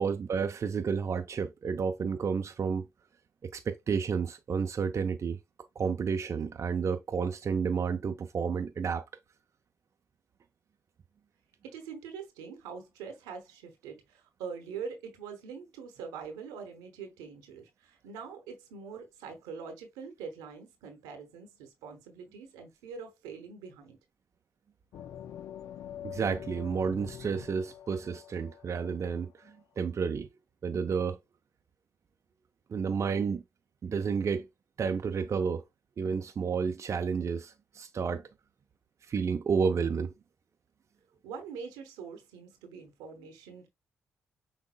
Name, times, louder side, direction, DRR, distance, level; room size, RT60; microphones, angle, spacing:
voice 1, 0.0-2.8 3.4-5.4 5.8-9.0 26.0-30.3 30.6-31.2 32.7-33.4 33.8-34.4 34.8-35.6 36.0-38.2 39.1-40.1, right 6 dB, 50° right, 0.5 m, -31 dB
voice 2, 11.6-24.0 41.2-43.7, right 6 dB, 85° right, 0.9 m, -44 dB
sound 1, 24.9-29.5, left 10 dB, 70° left, 0.4 m, -45 dB
6.2 x 3.5 x 2.2 m
hypercardioid pair, 40°, 6 cm